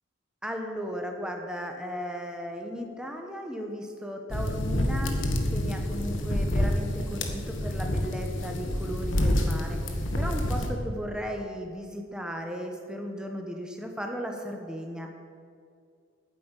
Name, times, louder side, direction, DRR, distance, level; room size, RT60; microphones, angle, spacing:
voice 1, 0.4-5.2 5.5-15.1, equal, 5° right, 3 dB, 1.2 m, -36 dB
sound 1, 4.3-10.7, left 1 dB, 65° left, 1.5 m, -28 dB
9.5 x 8.2 x 9.1 m, 2.3 s
head